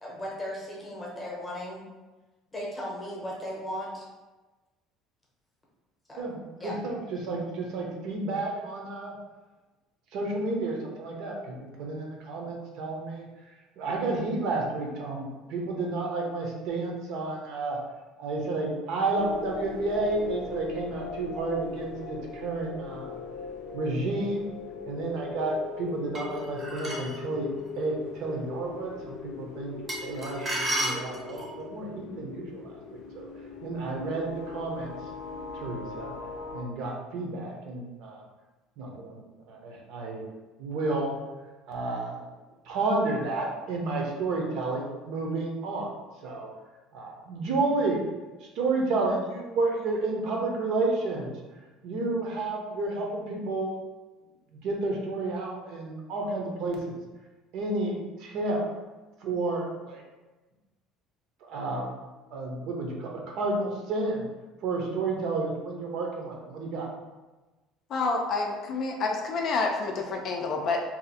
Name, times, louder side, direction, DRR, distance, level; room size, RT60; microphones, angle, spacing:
voice 1, 0.0-1.8 2.5-4.1 6.1-6.3 6.6-6.8, equal, 10° left, -4 dB, 0.8 m, -36 dB
voice 2, 6.2-9.1 10.1-13.3 13.8-17.8 18.2-23.2 23.7-24.5 24.8-27.5 27.8-29.7 30.0-33.3 33.6-34.9 35.5-36.1 36.5-38.2 38.8-39.2 39.5-40.2 40.6-41.2 41.7-42.2 42.6-45.9 46.2-46.5 46.9-48.0 48.4-51.3 51.8-53.7 54.6-57.0 57.5-58.6 59.2-60.0 61.5-61.9 62.3-64.3 64.6-66.9, right 2 dB, 55° right, 0 dB, 0.7 m, -31 dB
sound 1, 19.1-36.6, left 6 dB, 80° left, 0.6 m, -40 dB
sound 2, 26.1-27.2 29.9-31.6, right 1 dB, 25° right, 0.7 m, -32 dB
voice 3, 67.9-70.8, left 3 dB, 40° left, 1 dB, 0.4 m, -28 dB
2.7 x 2.4 x 4.0 m, 1.2 s
cardioid pair, 165°, 0 cm